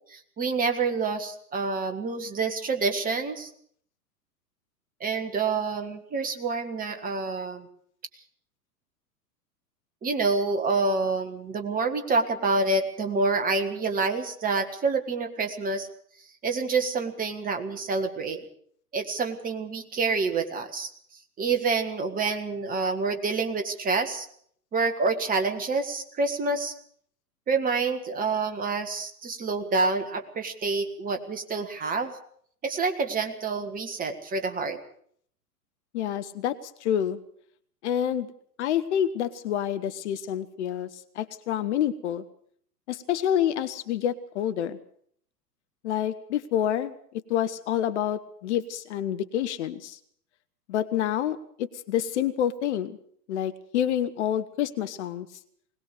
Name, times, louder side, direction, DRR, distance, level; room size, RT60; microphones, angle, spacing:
voice 1, 0.1-3.5 5.0-7.7 10.0-15.9 16.4-18.4 18.9-20.9 21.4-24.3 24.7-26.7 27.5-32.2 32.6-34.8, right 4 dB, 15° right, 7 dB, 1.7 m, -27 dB
voice 2, 35.9-37.2 37.8-38.3 38.6-42.2 42.9-44.8 45.8-50.0 50.7-53.0 53.3-55.3, left 10 dB, 45° left, 11 dB, 1.1 m, -28 dB
21.0 x 18.5 x 6.7 m, 0.62 s
figure-of-eight pair, 100°, 49 cm